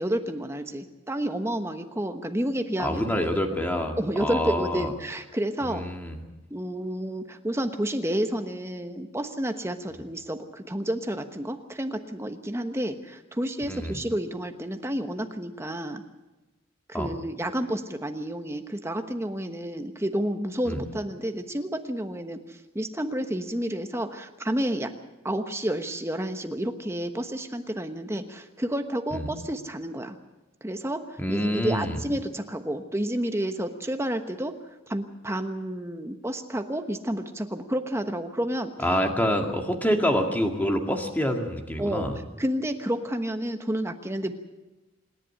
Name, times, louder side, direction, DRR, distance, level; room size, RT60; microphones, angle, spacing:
voice 1, 0.0-3.3 4.0-5.8 6.5-16.0 16.9-24.9 25.2-30.2 30.6-34.6 34.9-38.7 41.8-42.1 42.4-44.3, right 1 dB, 10° right, 7 dB, 1.1 m, -30 dB
voice 2, 2.8-4.9 5.6-6.2 13.7-14.0 16.9-17.1 20.7-20.8 29.1-29.3 31.2-32.0 38.8-42.2, equal, 10° left, 3 dB, 2.0 m, -27 dB
26.5 x 11.0 x 9.9 m, 1.1 s
head